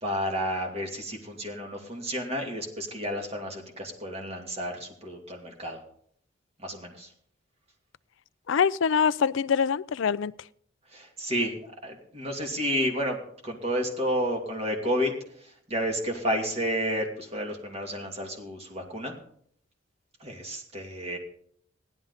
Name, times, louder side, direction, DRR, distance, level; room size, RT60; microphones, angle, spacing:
voice 1, 0.0-5.8 6.6-7.1 10.9-13.2 13.4-15.1 15.4-19.1 20.2-21.2, equal, 30° right, 2.5 m, -31 dB
voice 2, 8.5-10.3, left 6 dB, 70° left, 0.4 m, -24 dB
16.0 x 11.5 x 4.1 m
head